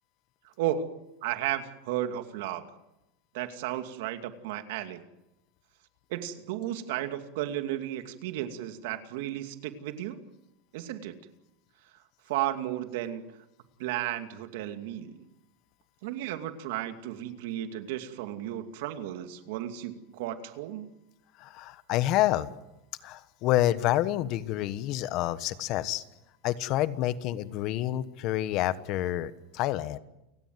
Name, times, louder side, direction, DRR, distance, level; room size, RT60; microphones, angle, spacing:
voice 1, 0.6-2.7 3.3-5.0 6.1-10.2 10.7-11.2 12.3-13.4 13.8-15.2 16.0-20.9, right 12 dB, 70° right, 8 dB, 2.5 m, -34 dB
voice 2, 21.4-22.5 23.0-26.0 26.4-30.0, left 14 dB, 45° left, 14 dB, 1.3 m, -28 dB
29.5 x 17.5 x 9.5 m, 0.91 s
supercardioid pair, 155°, 0 cm